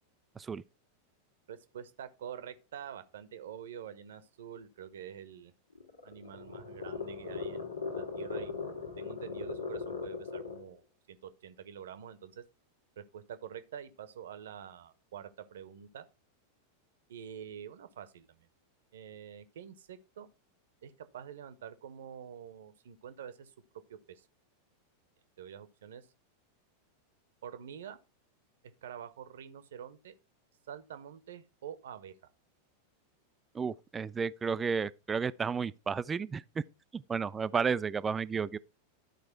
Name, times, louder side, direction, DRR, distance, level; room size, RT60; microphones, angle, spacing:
voice 1, 1.5-5.5 6.0-8.5 9.0-10.8 11.1-12.4 13.0-16.0 17.1-18.5 18.9-20.3 20.8-23.5 23.9-24.2 25.4-26.1 27.4-28.0 28.8-30.1 30.7-32.1, right 8 dB, 60° right, 1.0 m, -46 dB
sound 1, 5.7-10.7, left 5 dB, 75° left, 1.7 m, -39 dB
voice 2, 33.5-36.6 36.9-38.6, right 5 dB, 15° right, 0.4 m, -32 dB
12.0 x 4.9 x 4.5 m
figure-of-eight pair, 90°, 0 cm